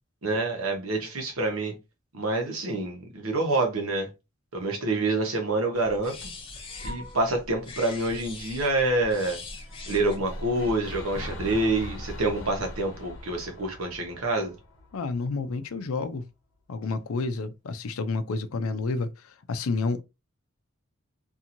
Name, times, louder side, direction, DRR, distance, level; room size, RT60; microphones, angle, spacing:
voice 1, 0.2-1.7 2.1-4.1 4.5-6.3 6.8-9.4 9.9-14.5, right 2 dB, 85° right, 1.0 m, -27 dB
sound 1, 5.7-10.7, left 2 dB, 25° left, 0.6 m, -41 dB
sound 2, 9.6-15.8, left 1 dB, 60° left, 0.8 m, -41 dB
voice 2, 14.9-16.2 16.7-20.0, left 3 dB, 85° left, 0.5 m, -30 dB
2.9 x 2.6 x 2.6 m
head